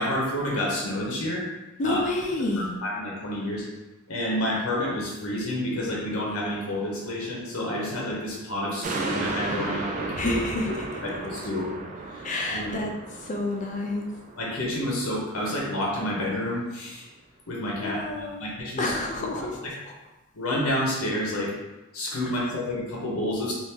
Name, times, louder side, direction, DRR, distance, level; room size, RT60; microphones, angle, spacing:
voice 1, 0.0-1.5 1.8-2.0 2.4-3.7 4.1-10.7 11.0-11.7 12.1-12.8 14.4-17.0 17.5-19.7 20.3-21.5 21.9-23.5, left 1 dB, 70° left, -4 dB, 0.8 m, -29 dB
voice 2, 1.8-2.7 10.2-10.7 12.2-12.9 13.2-14.1 17.8-18.5 18.8-19.6, left 2 dB, 35° left, 1 dB, 0.4 m, -29 dB
sound 1, 8.8-15.5 15.9-16.0, right 3 dB, 35° right, 0.3 m, -35 dB
3.4 x 2.5 x 2.8 m, 1.1 s
head